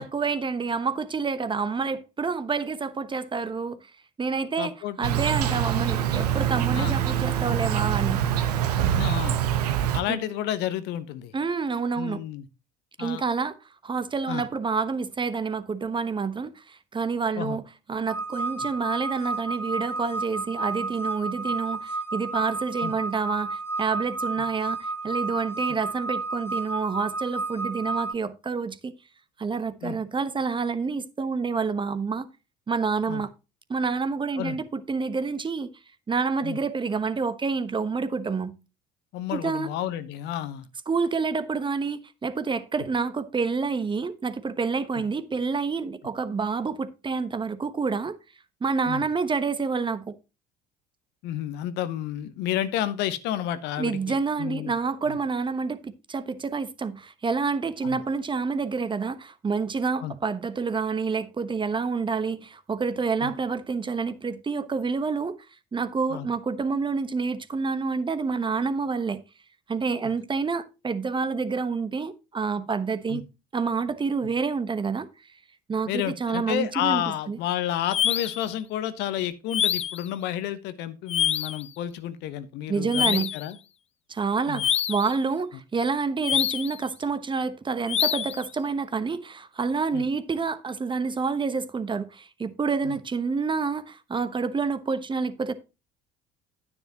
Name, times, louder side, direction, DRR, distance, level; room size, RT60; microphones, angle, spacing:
voice 1, 0.0-3.8 4.2-4.7 5.0-8.2 10.1-10.2 11.3-12.2 13.0-13.5 13.8-17.6 17.9-28.9 29.4-32.3 32.7-33.3 33.7-35.7 36.1-38.5 39.3-39.7 40.9-48.2 48.6-50.1 53.8-65.4 65.7-69.2 69.7-73.2 73.5-75.1 75.7-77.4 82.7-83.3 84.1-95.5, right 4 dB, 25° right, 1.0 m, -28 dB
voice 2, 4.6-5.0 6.7-6.9 8.9-9.4 9.9-11.3 12.0-12.5 13.0-13.2 14.3-14.5 17.4-17.6 22.8-22.9 29.8-30.0 33.1-33.2 34.4-34.6 36.4-36.6 39.1-40.7 48.9-49.0 51.2-54.7 55.1-55.2 57.8-58.0 60.0-60.1 63.2-63.3 66.1-66.3 70.0-70.1 73.1-73.2 75.9-83.6 84.5-84.6 89.9-90.1 92.8-93.0, left 11 dB, 60° left, 1.0 m, -31 dB
Insect, 5.0-10.0, right 10 dB, 80° right, 0.9 m, -24 dB
sound 1, 18.1-28.1, right 3 dB, 10° left, 1.2 m, -31 dB
sound 2, 77.9-78.5 79.5-80.1 81.1-81.6 82.9-83.5 84.6-85.1 86.2-86.8 87.9-88.4, left 10 dB, 35° left, 0.5 m, -26 dB
10.0 x 9.7 x 2.9 m
figure-of-eight pair, 60°, 20 cm